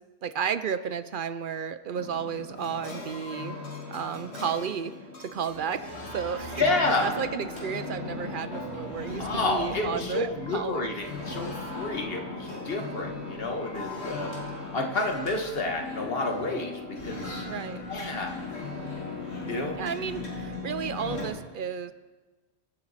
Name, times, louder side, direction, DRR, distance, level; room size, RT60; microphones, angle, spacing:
voice 1, 0.2-3.6 3.9-4.9 5.2-5.8 6.1-6.6 7.0-10.9 17.5-17.8 19.8-21.9, right 7 dB, 60° right, 13 dB, 0.6 m, -32 dB
sound 1, 1.9-21.3, left 2 dB, 80° left, 2.6 m, -37 dB
voice 2, 6.6-7.1 9.2-14.3 14.7-17.5 17.9-18.4 19.4-19.8, left 2 dB, 60° left, 3 dB, 1.6 m, -30 dB
23.5 x 7.9 x 4.2 m, 1.3 s
omnidirectional pair, 1.1 m